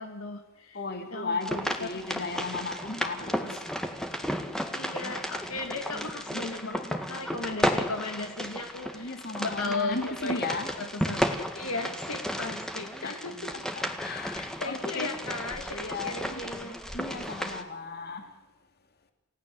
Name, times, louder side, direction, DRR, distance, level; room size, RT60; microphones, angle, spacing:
voice 1, 0.0-0.8 1.1-1.9 4.7-10.4 10.8-11.2 11.5-13.5 14.3-16.7, left 3 dB, 70° left, 2.4 m, -36 dB
voice 2, 0.7-3.6 8.9-10.7 13.0-13.2 13.5-15.1 15.7-16.4 16.9-18.3, left 3 dB, 45° left, 3.0 m, -36 dB
sound 1, 1.4-17.6, equal, 5° left, 1.9 m, -33 dB
29.0 x 17.0 x 7.9 m
head